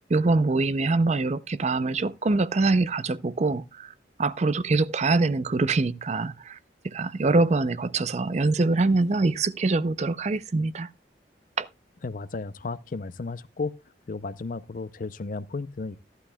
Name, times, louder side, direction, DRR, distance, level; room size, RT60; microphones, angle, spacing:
voice 1, 0.1-3.9 4.2-6.6 6.8-10.9 11.6-11.7, right 3 dB, 40° right, 0.5 m, -24 dB
voice 2, 12.0-13.8 14.1-16.0, left 3 dB, 50° left, 0.5 m, -34 dB
15.0 x 11.5 x 2.3 m
head